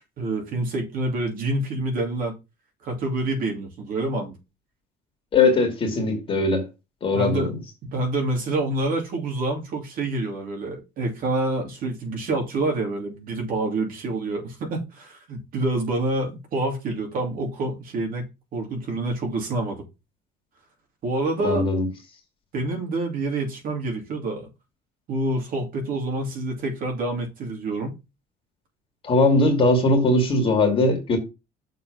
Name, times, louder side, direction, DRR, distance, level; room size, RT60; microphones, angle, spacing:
voice 1, 0.0-2.4 2.8-4.4 7.1-7.5 7.8-18.2 18.5-19.8 21.0-21.7 22.5-24.5 25.1-28.0, right 2 dB, 55° right, 2.7 m, -27 dB
voice 2, 5.3-6.6 7.0-7.4 21.4-21.9 29.0-31.2, left 2 dB, 30° left, 2.2 m, -20 dB
6.7 x 3.7 x 6.0 m
cardioid pair, 160°, 18 cm